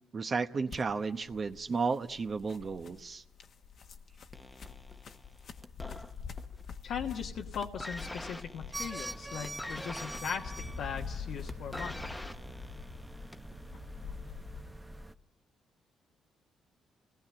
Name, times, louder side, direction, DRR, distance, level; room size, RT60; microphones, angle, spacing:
voice 1, 0.1-3.2, right 4 dB, 40° right, 7 dB, 0.9 m, -33 dB
sound 1, 0.7-14.7, left 6 dB, 60° left, 1.2 m, -46 dB
sound 2, 4.3-6.7 6.9-7.3 7.6-13.6 14.4-14.5, left 1 dB, 10° left, 1.0 m, -45 dB
voice 2, 6.8-12.0, left 7 dB, 75° left, 0 dB, 1.4 m, -39 dB
sound 3, 8.7-15.1, right 1 dB, 10° right, 0.8 m, -44 dB
29.0 x 18.5 x 8.9 m, 0.98 s
cardioid pair, 90°, 0 cm